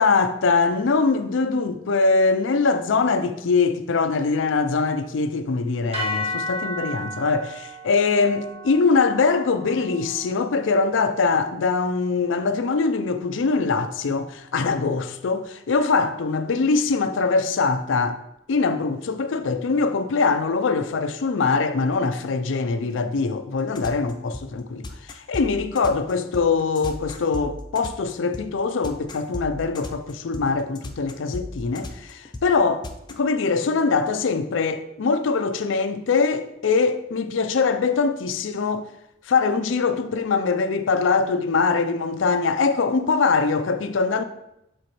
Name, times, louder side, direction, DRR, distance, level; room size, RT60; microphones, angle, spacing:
voice 1, 0.0-18.2 18.5-38.9 39.3-44.2, left 4 dB, 80° left, 0.4 m, -22 dB
sound 1, 5.9-14.2, left 1 dB, 30° right, 0.9 m, -35 dB
sound 2, 23.6-33.1, left 2 dB, 20° left, 0.4 m, -35 dB
7.6 x 4.3 x 3.0 m
head